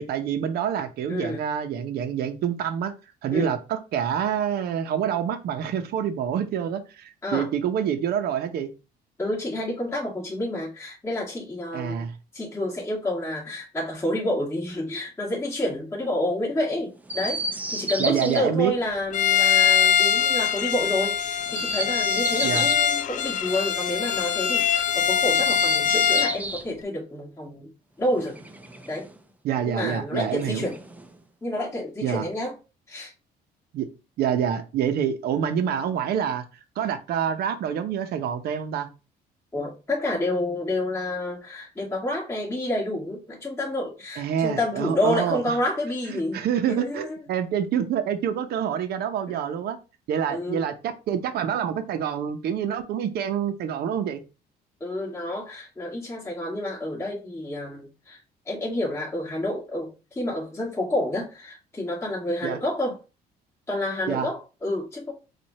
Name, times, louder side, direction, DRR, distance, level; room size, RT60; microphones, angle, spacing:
voice 1, 0.0-2.9 3.2-8.7 11.7-12.1 18.0-18.7 22.4-22.7 29.4-30.7 32.0-32.3 33.7-33.9 34.2-36.4 36.8-38.9 44.2-45.6 46.3-49.8 50.1-54.2 62.4-62.6 64.1-64.3, right 8 dB, 70° right, 0.8 m, -27 dB
voice 2, 1.1-1.5 3.3-3.5 7.2-7.5 9.2-12.0 12.3-17.4 17.7-27.7 28.0-28.4 28.9-29.1 29.6-30.8 31.4-32.5 32.9-33.1 39.5-46.4 46.7-47.2 49.3-49.4 50.3-50.7 54.8-58.2 58.5-63.0 63.7-65.1, left 1 dB, 15° left, 2.2 m, -29 dB
Chirp tweet, 17.1-18.4 21.4-22.8 25.2-26.7 28.1-29.2 30.3-31.2, right 2 dB, 10° right, 0.6 m, -32 dB
Bowed string instrument, 19.1-26.4, left 8 dB, 50° left, 0.5 m, -22 dB
4.7 x 2.5 x 4.2 m
cardioid pair, 110°, 17 cm